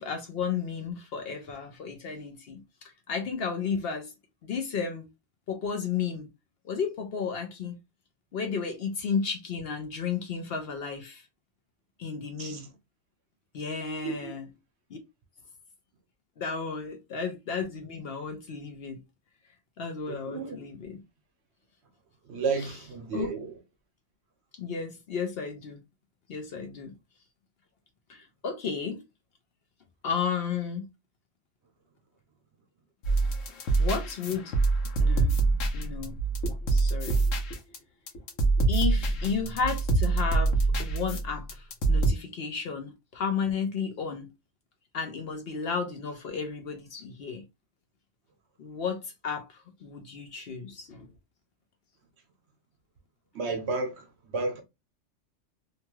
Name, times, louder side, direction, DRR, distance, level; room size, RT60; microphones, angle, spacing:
voice 1, 0.0-4.1 4.4-5.1 5.5-6.3 6.6-7.8 8.3-11.3 12.0-12.7 13.5-14.5 14.9-15.0 16.4-19.0 19.8-21.0 23.1-23.3 24.6-25.8 26.3-26.9 28.1-29.0 30.0-30.9 33.8-34.6 35.0-35.4 35.7-36.2 36.7-37.2 38.7-44.3 44.9-47.4 48.6-51.1, left 6 dB, 60° left, 0.8 m, -33 dB
voice 2, 20.1-20.6 22.3-23.5 53.3-54.6, right 4 dB, 65° right, 1.0 m, -32 dB
sound 1, 33.0-37.8 38.1-42.1, right 3 dB, 85° left, 1.1 m, -25 dB
2.8 x 2.2 x 2.9 m
omnidirectional pair, 1.3 m